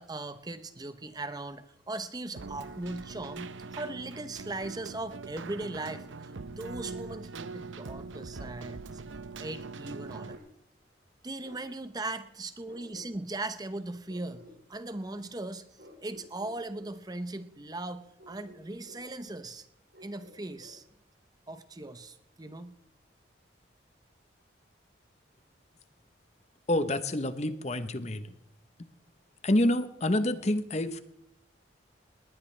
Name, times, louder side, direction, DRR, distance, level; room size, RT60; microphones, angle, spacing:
voice 1, 0.0-9.0 9.4-10.4 11.2-15.7 16.0-19.7 20.0-20.8 21.5-22.7, right 2 dB, 20° right, 11 dB, 0.8 m, -39 dB
Keyboard (musical), 2.4-10.4, right 4 dB, 85° right, 0.7 m, -42 dB
Bark, 10.3-10.5 11.4-11.6 12.7-13.4 14.0-14.6 15.8-16.9 18.2-19.1 19.9-20.8, left 1 dB, 70° right, 6.3 m, -53 dB
voice 2, 26.7-28.3 29.4-31.0, left 1 dB, 35° left, 11 dB, 0.9 m, -27 dB
20.0 x 19.5 x 3.3 m, 0.76 s
head